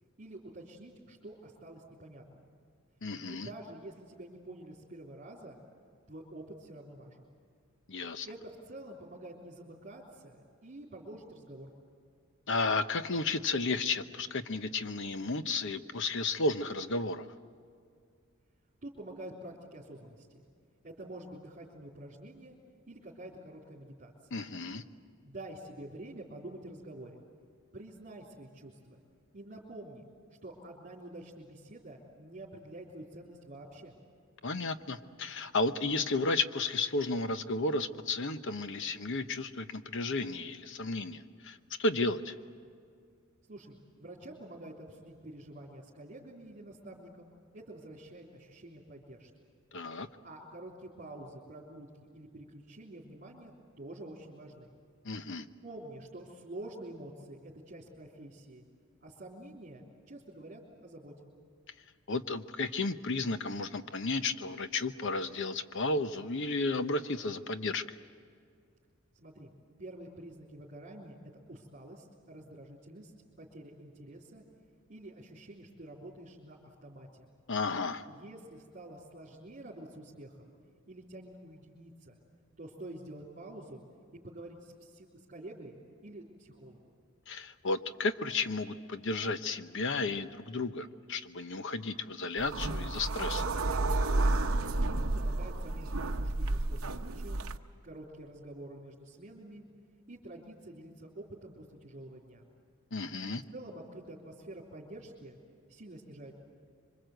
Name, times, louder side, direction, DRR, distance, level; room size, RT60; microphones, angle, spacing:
voice 1, 0.2-2.5 3.3-5.6 6.1-7.3 8.3-11.7 18.8-20.4 20.8-22.6 22.9-24.4 25.2-27.2 27.7-29.0 29.3-30.1 30.4-33.9 43.5-49.3 50.2-54.7 55.6-58.6 59.0-61.1 69.1-69.5 69.8-71.2 71.5-73.1 73.4-74.4 74.9-77.3 78.1-80.5 80.9-82.2 82.6-83.8 84.2-85.8 86.0-86.8 94.9-97.4 97.8-99.6 100.1-102.5 103.5-105.4 105.7-106.3, right 1 dB, 40° right, -6 dB, 3.5 m, -48 dB
voice 2, 3.0-3.5 7.9-8.3 12.5-17.3 24.3-24.8 34.4-42.3 49.7-50.1 55.0-55.5 62.1-67.8 77.5-78.1 87.3-93.5 102.9-103.4, left 3 dB, 60° left, 10 dB, 0.9 m, -33 dB
sound 1, 92.4-97.6, right 2 dB, 65° right, 0.9 m, -31 dB
26.0 x 24.5 x 8.0 m, 2.3 s
head